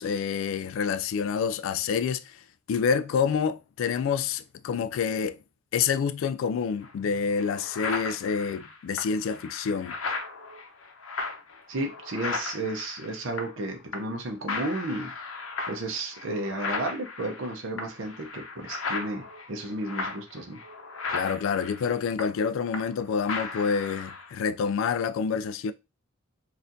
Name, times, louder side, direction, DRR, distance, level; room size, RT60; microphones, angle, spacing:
voice 1, 0.0-2.3 2.7-5.4 5.7-9.9 21.1-25.7, left 6 dB, 70° left, 0.3 m, -27 dB
sound 1, 6.8-6.9 7.3-13.7 13.9-14.2 14.5-23.0 23.3-24.3, left 4 dB, 85° left, 0.7 m, -36 dB
voice 2, 11.7-15.1 15.6-20.6, right 2 dB, 65° right, 0.7 m, -33 dB
4.2 x 2.4 x 2.6 m
head